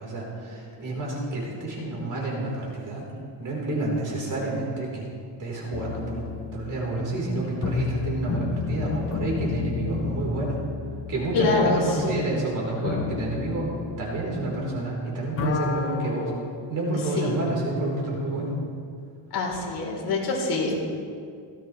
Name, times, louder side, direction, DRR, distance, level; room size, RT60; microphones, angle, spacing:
voice 1, 0.0-3.0 3.4-5.1 5.4-6.2 6.5-10.6 11.1-13.7 14.0-16.3 16.7-18.6, right 2 dB, 40° right, -3 dB, 4.2 m, -29 dB
sound 1, 5.7-15.0 15.2-16.7, left 6 dB, 30° left, 0.7 m, -32 dB
voice 2, 11.3-12.3 17.2-17.3 19.3-20.8, left 3 dB, 55° left, -2 dB, 3.9 m, -25 dB
18.0 x 14.5 x 3.3 m, 2.3 s
cardioid pair, 150°, 47 cm